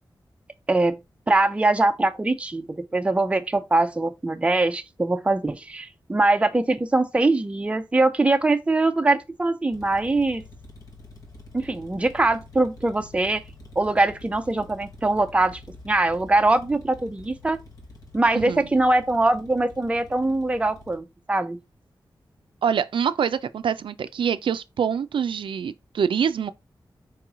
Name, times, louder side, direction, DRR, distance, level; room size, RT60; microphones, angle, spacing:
voice 1, 0.7-1.0 1.3-10.4 11.5-13.4 13.8-15.6 15.8-17.6 18.1-21.6, right 2 dB, 15° right, 0.5 m, -22 dB
sound 1, 9.7-21.0, left 2 dB, 45° left, 1.0 m, -47 dB
voice 2, 18.3-18.7 22.6-26.5, right 7 dB, 85° right, 0.4 m, -25 dB
4.7 x 3.0 x 3.5 m
wide cardioid pair, 180°, 8 cm